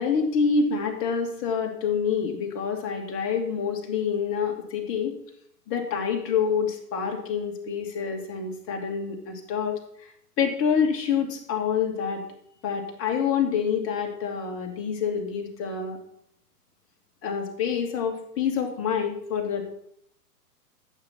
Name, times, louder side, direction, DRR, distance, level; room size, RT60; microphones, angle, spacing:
voice 1, 0.0-5.1 5.7-9.8 10.4-12.2 12.6-16.0 17.2-19.6, left 6 dB, 30° left, 2 dB, 2.6 m, -27 dB
14.5 x 8.3 x 4.5 m, 0.70 s
figure-of-eight pair, 110°, 47 cm